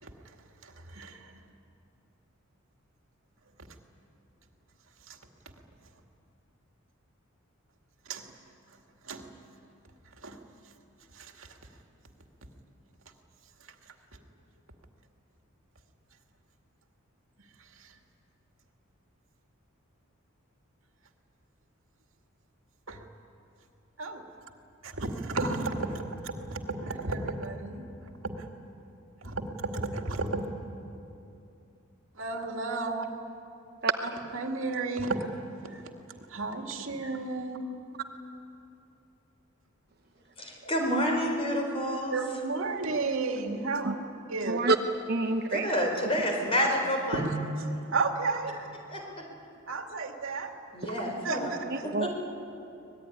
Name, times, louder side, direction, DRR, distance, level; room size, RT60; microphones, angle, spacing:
voice 1, 0.0-0.4 0.6-1.4 5.1-5.2 8.1-8.3 9.0-9.2 10.2-10.4 11.1-11.6 13.9-14.0 17.6-18.0 22.9-23.0 24.0-24.2 24.8-27.9 28.2-28.5 29.2-30.5 32.1-33.1 34.0-35.2 35.6-35.8 36.3-37.6 42.1-43.9 44.3-44.6 47.1-47.3 47.6-48.5 49.7-50.5 50.8-50.9 51.2-51.9, right 3 dB, 75° right, 3 dB, 2.2 m, -33 dB
voice 2, 40.4-42.2 45.5-47.2 48.9-49.2 50.7-51.5 52.0-52.1, equal, 30° left, 1 dB, 4.4 m, -29 dB
voice 3, 45.1-45.7 50.8-51.0 51.7-52.1, right 3 dB, 50° right, 5 dB, 1.0 m, -27 dB
24.5 x 20.0 x 10.0 m, 2.8 s
head